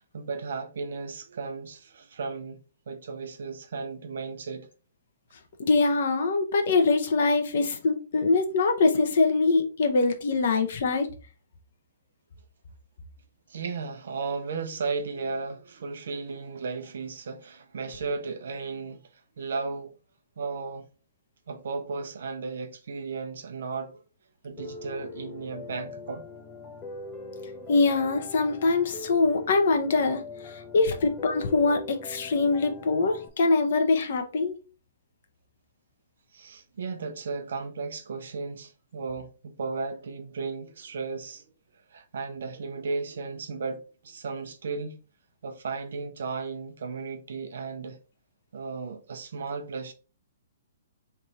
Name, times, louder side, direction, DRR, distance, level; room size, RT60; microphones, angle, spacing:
voice 1, 0.0-4.7 13.5-19.0 19.4-19.9 20.4-20.9 21.5-24.0 24.4-26.2 36.3-41.5 41.9-45.0 45.4-48.0 48.5-49.9, right 4 dB, 70° right, 0.7 m, -35 dB
voice 2, 5.7-11.1 27.7-34.6, left 3 dB, 65° left, 0.8 m, -23 dB
Piano, 24.6-33.3, left 3 dB, 25° left, 0.7 m, -42 dB
3.4 x 2.6 x 4.2 m
hypercardioid pair, 130°, 0 cm